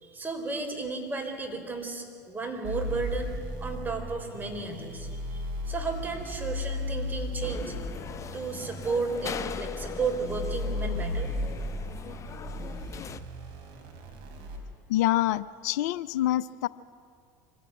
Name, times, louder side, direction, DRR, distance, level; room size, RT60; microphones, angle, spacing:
voice 1, 0.0-3.3 3.6-7.7 8.3-11.3, right 3 dB, 20° right, 4 dB, 3.9 m, -33 dB
sound 1, 2.6-14.6, left 1 dB, 60° right, 3.9 m, -35 dB
sound 2, 7.4-13.2, left 8 dB, 30° left, 0.8 m, -40 dB
voice 2, 14.9-16.7, left 15 dB, 65° left, 18 dB, 0.4 m, -26 dB
24.0 x 16.0 x 8.9 m, 2.3 s
hypercardioid pair, 85°, 10 cm